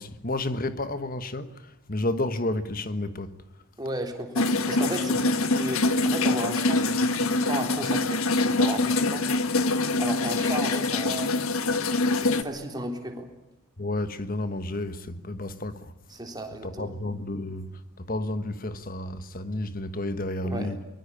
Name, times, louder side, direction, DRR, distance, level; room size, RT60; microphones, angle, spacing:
voice 1, 0.0-3.4 13.8-15.9 16.6-20.8, left 1 dB, 40° left, 1.4 m, -31 dB
voice 2, 3.8-9.3 10.0-11.3 12.2-13.3 16.1-16.9 20.4-20.7, right 1 dB, 20° right, 3.6 m, -34 dB
sound 1, 4.4-12.4, left 2 dB, 80° left, 1.4 m, -24 dB
23.5 x 22.0 x 8.7 m
head